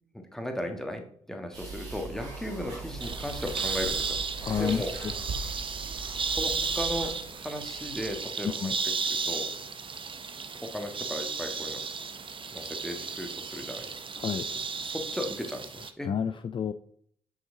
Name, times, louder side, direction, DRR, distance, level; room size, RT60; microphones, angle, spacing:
voice 1, 0.1-4.2 4.6-4.9 6.3-8.7 9.2-9.5 10.6-11.8 12.5-14.0 14.8-16.1, left 1 dB, 5° left, 4 dB, 1.5 m, -36 dB
sound 1, 1.5-7.1, right 3 dB, 85° right, 2.3 m, -40 dB
sound 2, 3.0-15.9, right 5 dB, 40° right, 0.7 m, -34 dB
Hands, 3.2-8.2, right 4 dB, 55° right, 1.5 m, -45 dB
voice 2, 4.4-5.1 8.6-8.8 14.2-14.5 16.0-16.7, left 7 dB, 40° left, 10 dB, 0.4 m, -30 dB
6.1 x 4.9 x 3.8 m, 0.63 s
hypercardioid pair, 40°, 14 cm